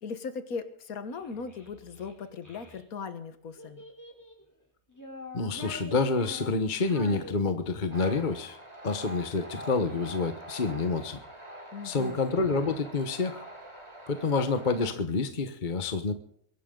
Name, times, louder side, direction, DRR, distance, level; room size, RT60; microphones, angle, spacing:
voice 1, 0.0-3.8 11.7-12.2, left 5 dB, 80° left, 10 dB, 1.8 m, -38 dB
Child speech kid speaking, 1.1-2.8 3.6-4.4 4.9-8.0, left 1 dB, 10° left, 3.7 m, -45 dB
voice 2, 5.3-8.6 8.8-11.2 11.8-13.4 14.1-16.1, left 4 dB, 35° left, 8 dB, 1.2 m, -28 dB
sound 1, 7.9-14.9, right 1 dB, 20° right, 3.4 m, -44 dB
23.0 x 12.0 x 3.8 m, 0.66 s
omnidirectional pair, 1.5 m